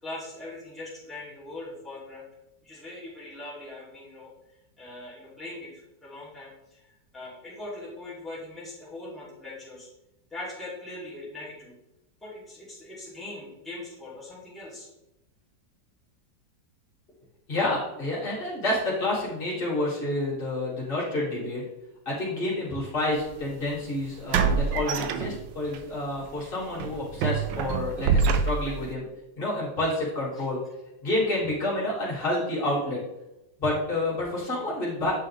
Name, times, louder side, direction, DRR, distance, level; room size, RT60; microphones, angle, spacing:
voice 1, 0.0-2.2 2.6-4.3 4.8-9.9 10.3-11.7 12.2-14.9 30.3-30.4, left 2 dB, ahead, -9 dB, 2.8 m, -41 dB
voice 2, 17.5-21.6 22.1-29.0 29.4-30.6 31.0-33.0 33.6-35.1, left 1 dB, 30° left, -7 dB, 2.4 m, -29 dB
sound 1, 23.2-23.3 24.3-25.8 26.2-26.4 26.8-28.9, right 5 dB, 80° right, 1.3 m, -26 dB
8.2 x 5.5 x 3.4 m, 0.90 s
omnidirectional pair, 2.0 m